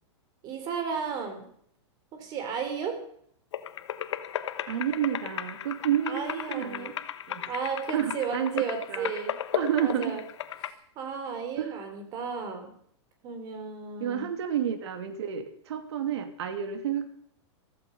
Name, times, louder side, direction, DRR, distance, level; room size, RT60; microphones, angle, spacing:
voice 1, 0.4-1.5 2.1-3.0 6.1-6.9 7.5-9.4 9.8-10.2 10.9-12.7 13.2-14.3, right 6 dB, 25° right, 6 dB, 3.3 m, -34 dB
sound 1, 3.5-10.7, left 10 dB, 70° left, 1.2 m, -35 dB
voice 2, 4.7-6.9 7.3-7.5 7.9-9.1 9.5-10.2 11.6-11.8 14.0-17.1, right 9 dB, 65° right, 7 dB, 2.7 m, -30 dB
15.0 x 14.5 x 5.5 m, 0.65 s
hypercardioid pair, 160°, 15 cm